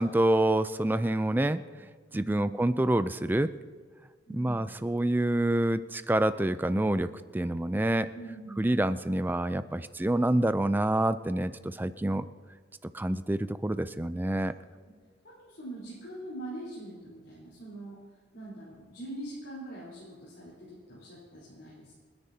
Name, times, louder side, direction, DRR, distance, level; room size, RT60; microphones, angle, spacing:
voice 1, 0.0-3.5 4.3-8.1 8.6-12.3 12.9-14.5, right 1 dB, 10° right, 13 dB, 0.3 m, -27 dB
voice 2, 2.1-2.6 4.3-4.7 8.1-8.8 15.2-18.0 18.3-21.9, right 1 dB, 70° left, -9 dB, 4.1 m, -43 dB
29.5 x 10.0 x 2.8 m, 1.5 s
head